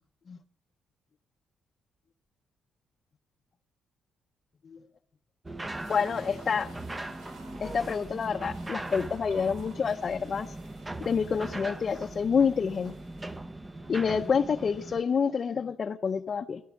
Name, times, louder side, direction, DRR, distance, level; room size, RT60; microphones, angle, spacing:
anchor raising, 5.4-15.0, right 2 dB, 15° right, 0.7 m, -40 dB
sound 1, 5.7-13.4, right 3 dB, 85° right, 4.7 m, -54 dB
voice 1, 5.9-6.7 7.6-10.5 11.0-12.9 13.9-16.6, left 6 dB, 45° left, 4 dB, 0.6 m, -28 dB
16.5 x 11.0 x 7.1 m, 0.79 s
cardioid pair, 90°, 0 cm